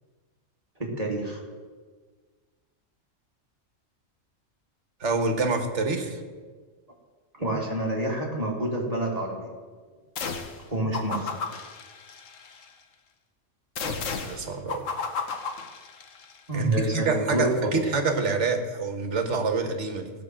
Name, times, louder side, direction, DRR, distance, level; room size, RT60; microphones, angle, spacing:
voice 1, 0.8-1.4 7.4-9.5 10.7-11.3 16.5-17.8, right 1 dB, 30° right, -2 dB, 2.8 m, -27 dB
voice 2, 5.0-6.2 13.8-14.8 16.5-20.1, right 4 dB, 60° right, 6 dB, 1.8 m, -27 dB
sound 1, 10.2-10.6 10.9-12.7 13.8-16.4, left 5 dB, 75° left, 1.4 m, -34 dB
17.5 x 6.0 x 7.6 m, 1.5 s
omnidirectional pair, 1.4 m